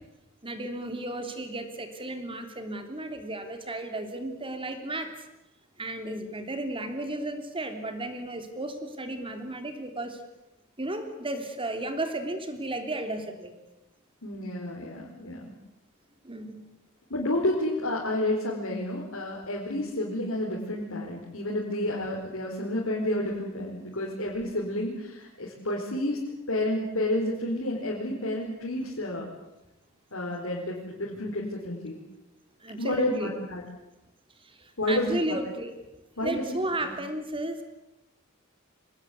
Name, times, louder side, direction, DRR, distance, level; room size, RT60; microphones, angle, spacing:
voice 1, 0.4-5.1 5.8-10.2 10.8-13.5 16.2-16.6 32.6-33.3 34.4-35.7 36.2-37.6, right 1 dB, 25° right, 7 dB, 3.2 m, -34 dB
voice 2, 14.2-15.5 17.1-26.2 26.5-29.3 30.1-32.0 32.8-33.6 34.8-35.2 36.2-36.4 36.8-36.9, left 1 dB, 70° left, -3 dB, 4.6 m, -30 dB
25.0 x 19.0 x 8.6 m, 0.95 s
head